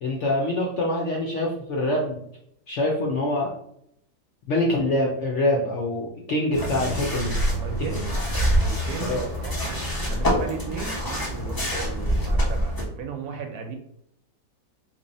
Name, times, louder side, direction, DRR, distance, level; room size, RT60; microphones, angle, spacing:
voice 1, 0.0-2.2 2.7-3.5 4.5-7.3 7.8-7.9 8.2-8.3 9.0-9.2, left 1 dB, 65° left, -2 dB, 0.7 m, -25 dB
sound 1, 6.5-12.8, equal, 35° left, 0.3 m, -25 dB
voice 2, 7.6-8.2 8.6-9.8 10.0-13.8, right 5 dB, 70° right, 4 dB, 1.0 m, -36 dB
3.0 x 2.7 x 4.0 m, 0.73 s
omnidirectional pair, 1.8 m